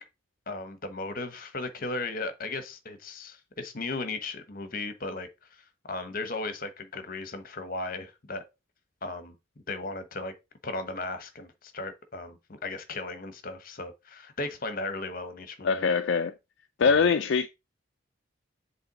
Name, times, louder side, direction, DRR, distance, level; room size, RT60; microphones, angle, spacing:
voice 1, 0.5-8.4 9.0-9.3 9.7-10.3 10.6-15.8 16.8-17.1, left 3 dB, 45° left, 1.0 m, -36 dB
voice 2, 15.6-16.3 16.8-17.5, left 5 dB, 60° left, 0.4 m, -23 dB
7.7 x 3.3 x 4.0 m
head